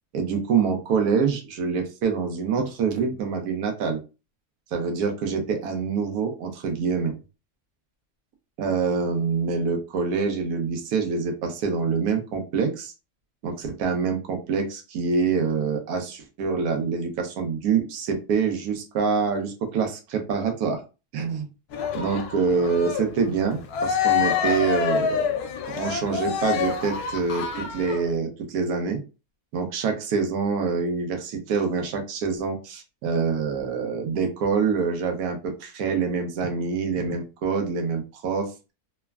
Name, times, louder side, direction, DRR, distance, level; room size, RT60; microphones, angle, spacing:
voice 1, 0.1-4.0 4.7-7.1 8.6-12.9 13.4-20.8 21.1-21.5 21.9-25.3 25.7-29.0 29.5-38.5, right 5 dB, 75° right, 4 dB, 1.1 m, -26 dB
Cheering, 21.7-28.1, left 7 dB, 80° left, 1.1 m, -27 dB
3.2 x 2.0 x 2.3 m, 0.30 s
omnidirectional pair, 1.7 m